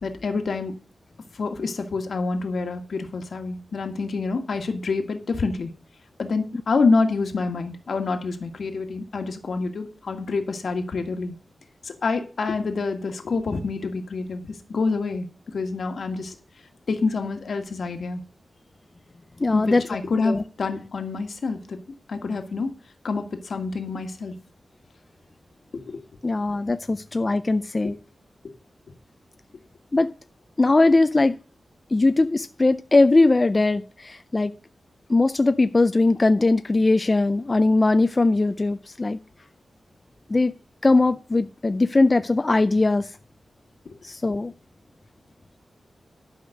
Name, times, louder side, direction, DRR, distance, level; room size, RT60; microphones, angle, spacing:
voice 1, 0.0-0.8 1.3-5.7 6.2-11.3 11.8-15.3 15.5-16.3 16.9-18.2 19.5-21.8 22.1-22.7 23.0-24.4 25.9-26.0 27.8-27.9 43.8-43.9, left 4 dB, 70° left, 1.6 m, -27 dB
voice 2, 19.4-20.4 26.2-27.9 29.9-30.1 30.6-31.4 31.9-34.5 35.1-39.2 40.3-40.5 40.8-43.1 44.0-44.5, left 2 dB, 30° left, 0.4 m, -20 dB
12.0 x 5.1 x 6.4 m
wide cardioid pair, 100°, 0 cm